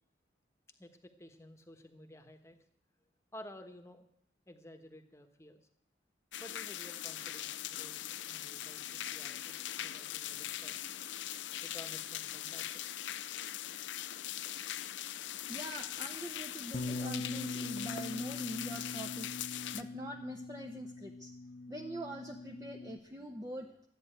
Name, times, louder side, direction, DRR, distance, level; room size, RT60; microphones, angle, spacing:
voice 1, 0.8-2.6 3.3-4.1 4.5-5.6 6.4-10.8 11.6-12.8, left 1 dB, 15° left, 7 dB, 1.2 m, -53 dB
sound 1, 6.3-19.8, left 12 dB, 85° left, 0.6 m, -41 dB
voice 2, 15.5-19.3 19.7-21.3 21.7-23.9, equal, 20° right, 2 dB, 0.9 m, -44 dB
Bass guitar, 16.7-23.0, left 2 dB, 45° left, 0.8 m, -42 dB
13.5 x 9.6 x 9.0 m, 0.71 s
head